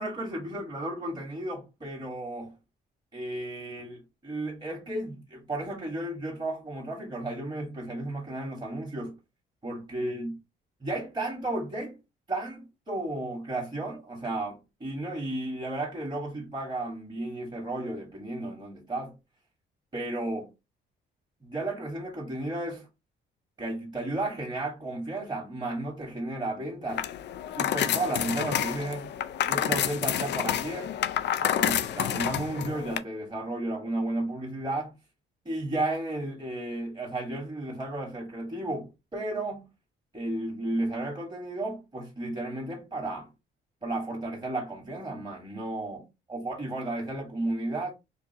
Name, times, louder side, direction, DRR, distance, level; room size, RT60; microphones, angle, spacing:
voice 1, 0.0-2.5 3.1-9.2 9.6-10.4 10.8-12.0 12.3-19.1 19.9-20.5 21.4-22.9 23.6-27.0 27.6-29.1 29.4-30.9 31.4-34.9 35.4-39.7 40.1-43.3 43.8-47.9, right 2 dB, 20° right, 1.6 m, -33 dB
sound 1, 26.9-33.0, left 10 dB, 60° left, 0.4 m, -29 dB
4.6 x 2.6 x 2.7 m
cardioid pair, 90°, 20 cm